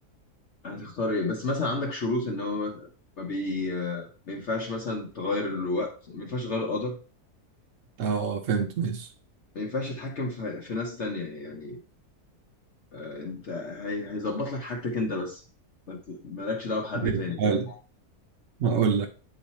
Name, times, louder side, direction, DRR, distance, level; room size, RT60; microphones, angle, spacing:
voice 1, 0.6-2.9 3.2-7.0 9.5-11.8 12.9-15.4 15.9-17.7, left 2 dB, 50° left, 1.2 m, -31 dB
voice 2, 8.0-9.1 17.0-17.7 18.6-19.1, right 6 dB, 60° right, 0.9 m, -26 dB
8.4 x 3.2 x 4.1 m
omnidirectional pair, 1.7 m